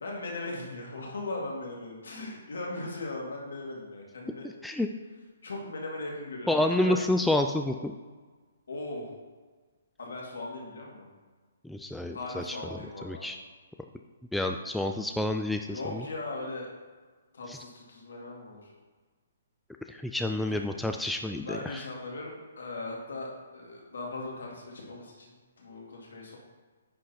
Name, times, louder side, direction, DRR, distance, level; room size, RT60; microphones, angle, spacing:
voice 1, 0.0-4.5 5.4-7.0 8.7-9.1 10.0-11.1 12.1-13.3 15.6-16.7 17.3-18.7 20.5-20.6 21.4-26.4, left 2 dB, 65° left, -2 dB, 2.1 m, -38 dB
voice 2, 6.5-8.0 11.6-12.6 13.0-13.4 14.3-16.0 17.5-17.6 19.9-21.8, left 1 dB, ahead, 4 dB, 0.3 m, -29 dB
9.8 x 3.8 x 4.2 m, 1.4 s
figure-of-eight pair, 130°, 0 cm